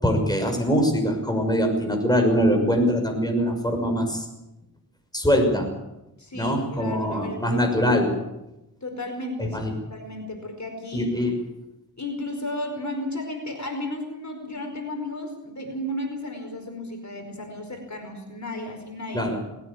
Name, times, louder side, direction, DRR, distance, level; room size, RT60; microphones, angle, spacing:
voice 1, 0.0-4.3 5.1-5.7 6.3-8.1 9.5-9.7 10.9-11.4 19.1-19.4, equal, 10° left, 3 dB, 6.1 m, -23 dB
voice 2, 6.2-7.6 8.8-11.1 12.0-19.3, left 1 dB, 50° left, 3 dB, 4.9 m, -34 dB
20.5 x 17.5 x 8.6 m, 0.93 s
wide cardioid pair, 55°, 37 cm